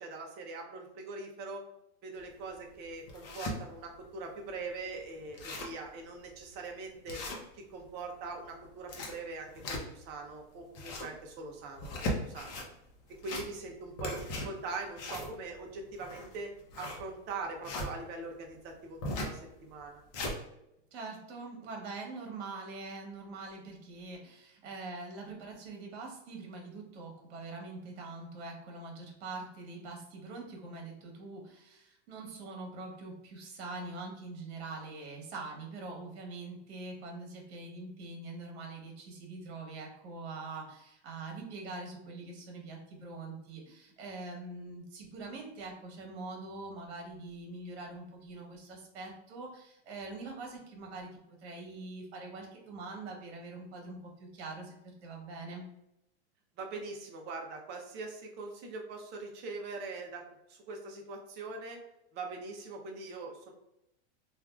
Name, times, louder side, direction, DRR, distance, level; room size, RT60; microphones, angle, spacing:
voice 1, 0.0-1.6 2.0-7.2 7.5-12.5 13.2-16.5 16.8-20.0 56.6-60.2 60.5-61.8 62.1-63.5, right 3 dB, 30° right, 2 dB, 0.6 m, -42 dB
sound 1, 2.2-2.3 2.8-3.6 4.1-4.2 4.5-4.6 5.0-5.1 5.2-5.8 6.3-6.4 7.1-7.9 8.6-10.1 10.6-11.2 11.7-12.7 13.1-13.7 14.0-17.9 19.0-19.4 19.8-20.4, left 1 dB, 45° left, 0.8 m, -38 dB
voice 2, 20.9-55.7, right 3 dB, 65° right, 1 dB, 1.1 m, -44 dB
3.4 x 2.4 x 2.3 m, 0.84 s
supercardioid pair, 135°, 34 cm